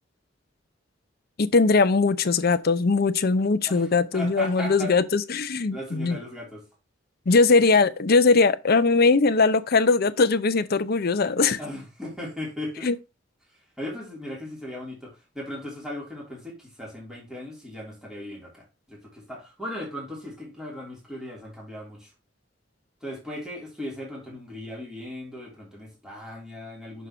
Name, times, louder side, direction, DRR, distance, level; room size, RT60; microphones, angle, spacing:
voice 1, 1.4-6.2 7.3-11.6 12.8-12.9, left 4 dB, 55° left, 0.6 m, -20 dB
voice 2, 3.6-4.9 5.7-6.6 11.6-12.9 13.8-22.1 23.0-27.1, left 1 dB, 5° right, 3.3 m, -37 dB
6.4 x 5.3 x 4.3 m
head